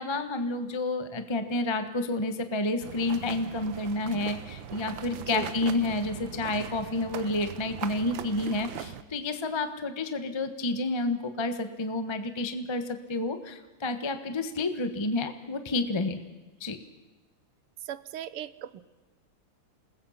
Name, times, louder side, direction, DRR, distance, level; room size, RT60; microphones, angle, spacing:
voice 1, 0.0-12.8 13.1-16.2 16.6-16.8, left 2 dB, 15° left, 8 dB, 1.0 m, -30 dB
sound 1, 2.8-9.0, right 9 dB, 65° right, 1.6 m, -40 dB
voice 2, 5.2-5.5 17.8-18.8, right 11 dB, 80° right, 15 dB, 1.8 m, -37 dB
28.0 x 21.0 x 5.7 m, 1.2 s
omnidirectional pair, 2.4 m